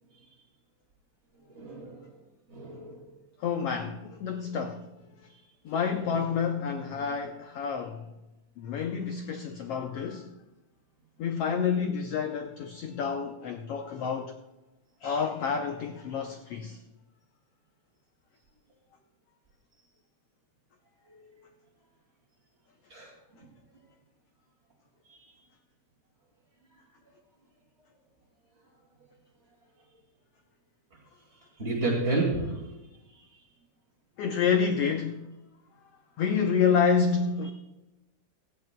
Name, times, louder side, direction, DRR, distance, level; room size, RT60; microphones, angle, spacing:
voice 1, 1.5-2.1 2.5-3.0 5.9-6.1 21.1-21.3 22.9-23.1 25.1-25.3 31.6-32.7 33.2-33.3, right 2 dB, 25° right, 2.0 m, -31 dB
voice 2, 3.4-4.8 5.6-8.1 8.6-10.3 11.2-14.3 15.0-16.8 34.2-35.3 36.2-37.5, left 6 dB, 90° left, 1.3 m, -28 dB
17.5 x 14.0 x 2.2 m
omnidirectional pair, 3.7 m